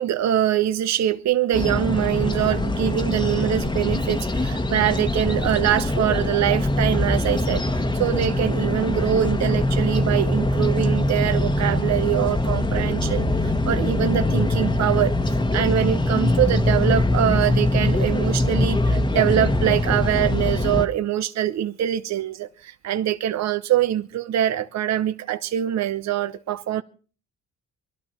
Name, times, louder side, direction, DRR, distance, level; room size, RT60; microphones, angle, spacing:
voice 1, 0.0-26.8, right 11 dB, 60° right, 0.8 m, -24 dB
sound 1, 1.5-20.9, left 1 dB, 15° left, 1.2 m, -23 dB
22.5 x 12.5 x 4.4 m
cardioid pair, 90°, 30 cm